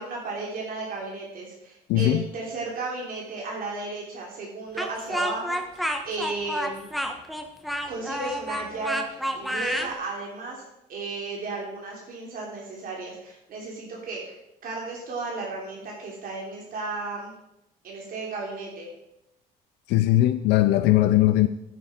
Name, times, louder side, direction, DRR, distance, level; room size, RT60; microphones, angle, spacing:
voice 1, 0.0-6.9 7.9-10.6 10.9-14.4 14.6-17.3 17.8-18.8, right 3 dB, 55° right, -2 dB, 3.1 m, -34 dB
voice 2, 1.9-2.2 19.9-21.5, left 15 dB, 90° left, 11 dB, 0.5 m, -19 dB
Speech, 4.8-9.9, equal, ahead, 1.1 m, -29 dB
10.0 x 9.2 x 4.3 m, 0.85 s
cardioid pair, 110°, 17 cm